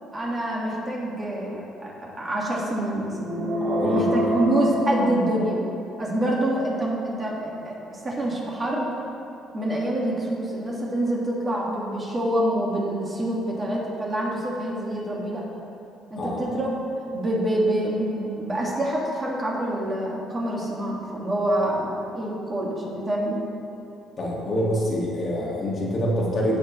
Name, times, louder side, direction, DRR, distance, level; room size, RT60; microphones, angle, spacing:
voice 1, 0.1-3.2 3.8-5.6 6.0-8.9 9.5-15.4 16.1-16.8 17.1-23.4, right 1 dB, 20° right, -4 dB, 1.7 m, -26 dB
sound 1, 3.2-5.8, equal, 60° right, 1.7 m, -26 dB
voice 2, 3.6-4.3 16.2-16.5 24.2-26.6, equal, 35° left, -4 dB, 1.6 m, -26 dB
16.5 x 6.1 x 3.0 m, 2.9 s
cardioid pair, 145°, 0 cm